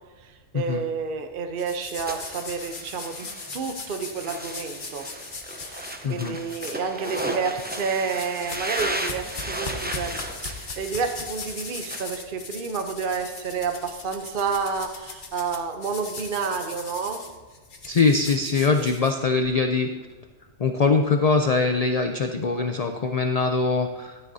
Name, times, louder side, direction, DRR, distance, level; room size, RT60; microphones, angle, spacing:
voice 1, 0.2-3.3 3.5-5.1 5.6-10.1 10.4-17.2, right 5 dB, 50° right, 6 dB, 0.8 m, -30 dB
sound 1, 1.6-6.0 6.5-7.3 7.6-19.5, left 3 dB, 40° left, 1.2 m, -39 dB
sound 2, 2.1-12.0, right 1 dB, 10° right, 0.6 m, -35 dB
voice 2, 6.0-6.4 17.9-19.9 20.6-24.1, left 4 dB, 60° left, 6 dB, 0.4 m, -22 dB
14.0 x 9.1 x 2.7 m, 1.3 s
omnidirectional pair, 1.3 m